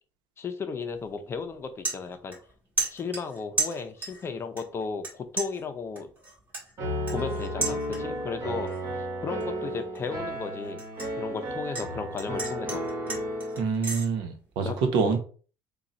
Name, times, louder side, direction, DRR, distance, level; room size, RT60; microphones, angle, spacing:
voice 1, 0.4-2.4 2.9-6.1 7.1-10.8 11.2-12.8 14.6-15.2, left 5 dB, 30° left, 8 dB, 0.6 m, -35 dB
sound 1, 0.9-1.1 1.5-2.5 2.8-4.3 4.6-5.1 5.4-8.3 8.7-9.0 9.4-11.9 12.2-14.1, right 2 dB, 25° right, 2.1 m, -34 dB
Piano, 6.8-13.6, equal, 45° right, 1.7 m, -33 dB
voice 2, 13.6-14.7 14.9-15.2, right 5 dB, 75° right, 6 dB, 1.0 m, -26 dB
3.8 x 2.3 x 4.2 m, 0.40 s
cardioid pair, 125°, 8 cm